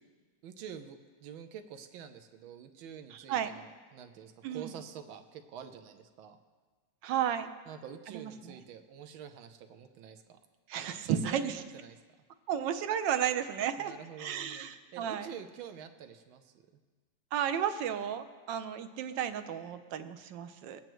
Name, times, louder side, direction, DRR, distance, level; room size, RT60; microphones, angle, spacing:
voice 1, 0.4-6.4 7.6-10.4 11.0-12.0 13.8-14.7 14.9-16.5, right 8 dB, 90° right, 8 dB, 1.6 m, -47 dB
voice 2, 3.1-3.6 4.4-4.7 7.0-7.5 8.1-8.6 10.7-11.5 12.5-13.9 14.2-15.3 17.3-20.8, right 9 dB, 75° right, 9 dB, 1.4 m, -33 dB
23.5 x 9.0 x 3.1 m, 1.4 s
omnidirectional pair, 2.1 m